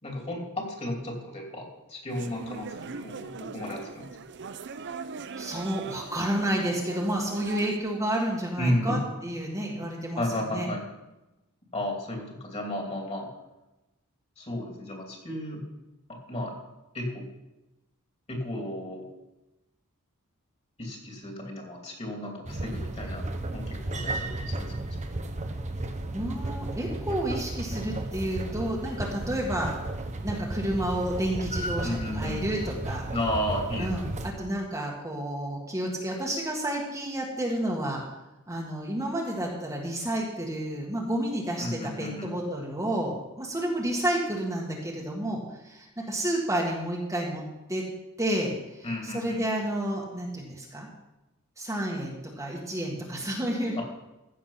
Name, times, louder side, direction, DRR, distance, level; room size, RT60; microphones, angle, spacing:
voice 1, 0.0-4.1 8.6-9.0 10.2-10.8 11.7-13.3 14.4-15.6 16.3-16.5 16.9-17.2 18.3-19.0 20.8-23.3 23.5-25.0 31.8-32.4 33.1-33.9 41.6-42.4 48.8-49.6, left 1 dB, 30° left, 0 dB, 3.0 m, -33 dB
sound 1, 2.1-7.8, right 5 dB, 55° right, 0.6 m, -40 dB
voice 2, 5.4-9.0 9.2-10.2 10.5-10.7 26.1-29.7 30.2-33.1 33.8-34.0 34.4-38.0 38.5-47.4 47.7-47.8 48.2-50.9 51.6-53.8, right 1 dB, 15° right, -3 dB, 1.7 m, -30 dB
sound 2, 22.5-34.3, right 2 dB, 30° right, 1.0 m, -34 dB
15.0 x 6.9 x 5.8 m, 0.99 s
head